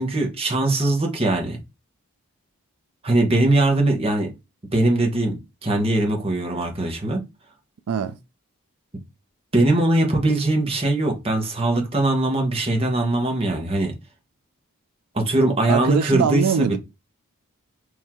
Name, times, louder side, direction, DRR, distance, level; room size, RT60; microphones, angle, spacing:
voice 1, 0.0-1.6 3.0-4.3 4.7-7.2 9.5-13.9 15.1-16.8, right 2 dB, 25° right, 1.0 m, -21 dB
voice 2, 7.9-8.2 15.7-16.8, right 7 dB, 85° right, 0.4 m, -22 dB
4.6 x 2.7 x 3.6 m
head